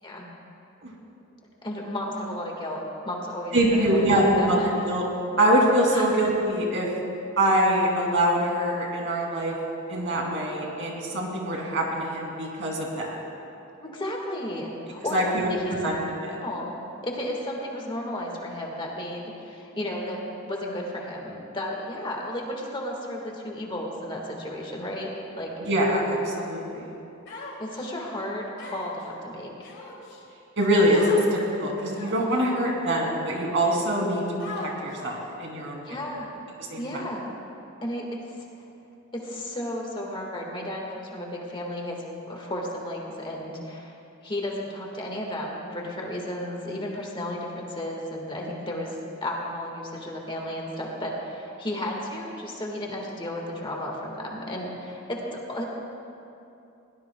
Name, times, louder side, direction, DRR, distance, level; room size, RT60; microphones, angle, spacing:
voice 1, 1.6-4.7 5.9-6.1 13.8-15.7 16.3-25.5 27.6-29.5 35.9-36.3 36.8-37.3 37.8-38.2 39.1-43.9 44.2-55.6, left 1 dB, 25° left, -1 dB, 1.7 m, -33 dB
voice 2, 3.5-4.6 4.9-5.0 5.4-6.9 7.4-9.5 9.9-13.1 15.1-16.0 25.6-26.9 30.6-36.0 36.7-36.8, right 1 dB, 60° right, -1 dB, 2.8 m, -24 dB
Human voice, 27.3-27.9 28.6-29.0 29.6-30.2 30.9-31.3 31.9-32.3 33.0-33.1 34.4-35.0, left 3 dB, 60° left, 2.9 m, -38 dB
21.5 x 18.0 x 2.3 m, 2.8 s
head